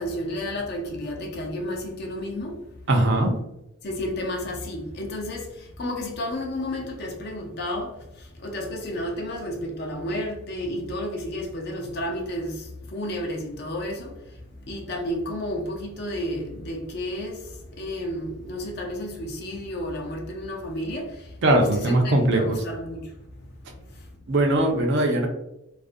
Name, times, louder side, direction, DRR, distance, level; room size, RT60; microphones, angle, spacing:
voice 1, 0.0-2.6 3.8-5.5 5.8-8.0 8.4-14.2 14.7-17.4 17.8-21.2 21.6-23.1, left 1 dB, 50° left, 0.5 m, -31 dB
voice 2, 2.9-3.3 21.4-22.6 24.3-25.3, right 1 dB, 55° right, 0.4 m, -20 dB
2.4 x 2.1 x 2.5 m
head